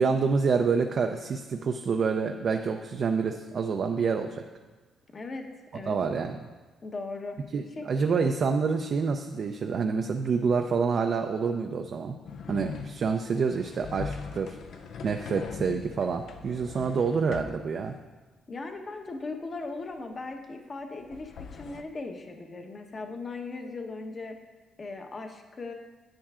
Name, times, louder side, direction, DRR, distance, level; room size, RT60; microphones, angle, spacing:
voice 1, 0.0-4.4 5.9-6.4 7.5-12.2 12.5-14.6 15.0-18.0, right 5 dB, 55° right, 4 dB, 0.5 m, -27 dB
voice 2, 5.1-5.5 5.7-6.0 6.8-7.4 7.8-7.9 18.5-24.3 24.8-25.7, left 3 dB, 35° left, 4 dB, 0.9 m, -38 dB
sound 1, 12.3-17.6 21.0-21.8, left 5 dB, 70° left, 0.4 m, -40 dB
10.0 x 8.5 x 2.4 m, 1.3 s
cardioid pair, 90°, 0 cm